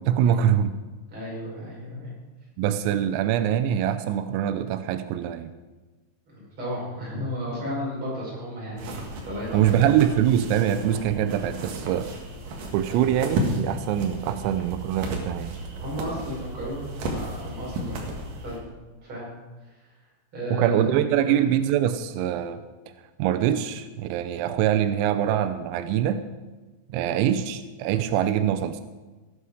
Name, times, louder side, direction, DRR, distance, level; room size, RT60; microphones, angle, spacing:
voice 1, 0.1-0.7 2.6-5.5 9.5-12.1 12.7-15.6 20.5-22.6 23.2-26.2 26.9-28.8, right 10 dB, 90° right, 10 dB, 3.3 m, -24 dB
voice 2, 1.1-2.1 2.9-3.5 6.3-9.9 12.9-13.1 15.8-18.6 19.0-19.2 20.3-21.4 27.0-27.1, equal, 25° right, -5 dB, 5.7 m, -34 dB
sound 1, 8.8-18.6, right 1 dB, 60° right, 2.5 m, -33 dB
17.0 x 9.7 x 4.9 m, 1.2 s
omnidirectional pair, 5.8 m